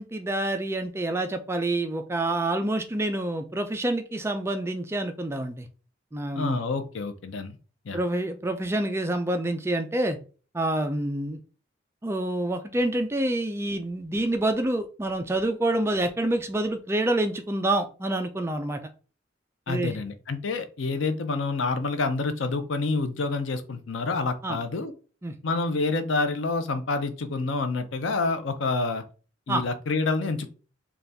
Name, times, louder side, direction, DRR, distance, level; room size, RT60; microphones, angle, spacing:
voice 1, 0.0-5.7 6.1-6.6 7.9-10.2 10.5-11.4 12.0-18.8 19.7-20.0 24.4-24.6 25.2-25.3 29.5-29.6, right 1 dB, 15° right, 6 dB, 0.3 m, -27 dB
voice 2, 6.3-7.6 7.9-8.0 19.7-24.9 25.4-29.0 29.5-30.5, left 3 dB, 80° left, 9 dB, 0.6 m, -28 dB
4.0 x 2.3 x 3.4 m, 0.36 s
head